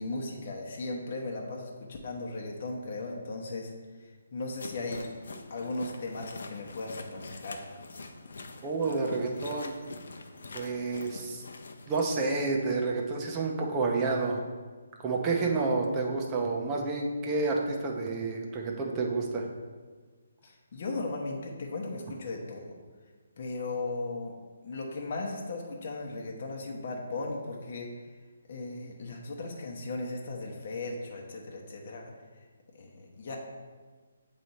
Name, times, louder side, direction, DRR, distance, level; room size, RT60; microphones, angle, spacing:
voice 1, 0.0-3.7 4.0-5.0 5.5-7.6 20.4-22.7 23.4-24.3 24.6-27.9 28.5-32.1 32.7-33.4, left 2 dB, 45° left, -1 dB, 0.9 m, -37 dB
sound 1, 4.5-12.1, left 3 dB, 70° left, 0.7 m, -45 dB
voice 2, 8.6-9.7 10.5-11.4 11.9-14.4 15.0-19.4, right 3 dB, 20° right, 0 dB, 0.7 m, -29 dB
7.5 x 3.3 x 4.1 m, 1.4 s
hypercardioid pair, 165°, 0 cm